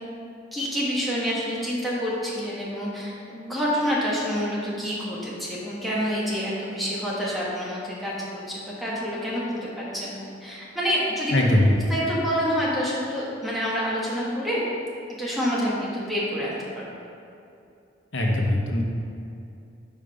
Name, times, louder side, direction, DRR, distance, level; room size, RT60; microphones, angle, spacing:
voice 1, 0.5-14.6 15.2-16.9, equal, ahead, -7 dB, 1.4 m, -28 dB
voice 2, 11.3-11.7 18.1-18.8, left 1 dB, 85° left, 0 dB, 0.9 m, -20 dB
5.3 x 4.9 x 5.2 m, 2.6 s
head